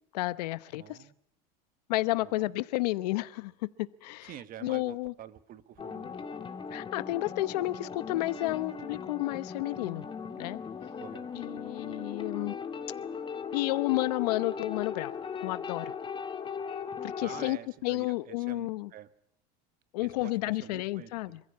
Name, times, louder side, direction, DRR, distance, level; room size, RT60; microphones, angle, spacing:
voice 1, 0.1-1.0 1.9-3.5 3.8-4.3 4.6-5.1 6.7-10.1 10.4-10.6 11.3-12.5 13.5-15.1 15.4-15.9 17.0-17.6 17.8-18.9 19.9-21.4, left 19 dB, 85° left, 0.9 m, -31 dB
voice 2, 0.7-1.1 2.2-2.5 4.2-6.2 11.0-11.3 17.2-19.1 20.0-21.4, right 11 dB, 45° right, 1.3 m, -47 dB
sound 1, 5.8-17.5, left 6 dB, 25° left, 2.1 m, -38 dB
27.0 x 15.0 x 8.5 m
supercardioid pair, 110°, 20 cm